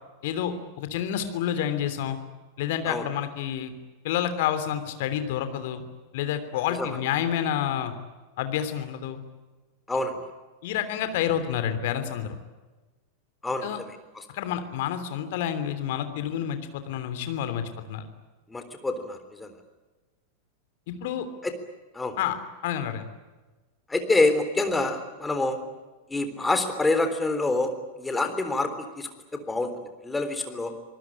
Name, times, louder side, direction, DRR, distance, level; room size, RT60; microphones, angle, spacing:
voice 1, 0.2-2.2 2.6-3.7 4.0-5.8 6.1-7.9 8.4-9.2 10.6-12.4 13.6-13.8 14.3-18.0 20.9-21.3 22.2-22.4 22.6-23.1, left 10 dB, 50° left, 10 dB, 3.1 m, -29 dB
voice 2, 9.9-10.2 13.4-14.2 18.5-19.5 21.4-21.5 21.9-22.2 23.9-25.6 26.1-27.7 28.0-29.7 30.0-30.7, left 2 dB, 10° left, 8 dB, 3.7 m, -27 dB
26.0 x 19.5 x 10.0 m, 1.2 s
figure-of-eight pair, 90°, 0 cm